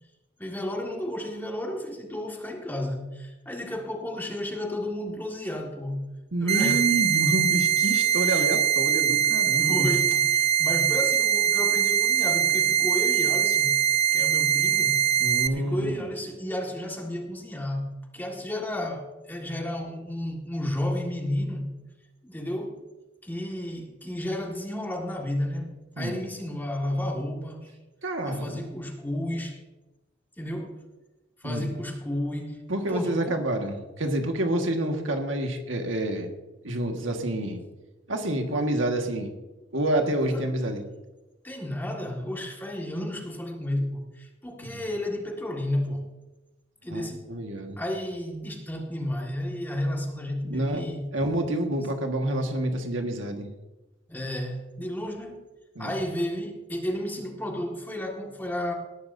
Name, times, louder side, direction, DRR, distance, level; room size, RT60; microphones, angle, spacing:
voice 1, 0.4-6.1 6.4-6.9 8.2-8.6 9.5-13.8 14.1-15.0 15.5-21.7 22.2-22.8 23.2-27.7 28.2-29.6 30.4-30.8 31.4-32.6 32.9-33.5 40.3-40.4 41.4-46.1 46.8-47.3 47.8-51.1 54.1-55.4 55.8-58.7, left 1 dB, 10° left, 1.8 m, -32 dB
voice 2, 6.3-9.9 15.2-15.9 26.0-26.2 28.0-28.7 31.4-31.7 32.7-36.3 36.6-37.6 38.1-39.3 39.7-40.8 46.9-47.8 50.4-50.8 51.1-53.5 55.7-55.9, right 1 dB, 90° right, 1.7 m, -28 dB
sound 1, 6.5-15.5, right 9 dB, 30° right, 0.4 m, -22 dB
19.0 x 12.0 x 2.7 m
head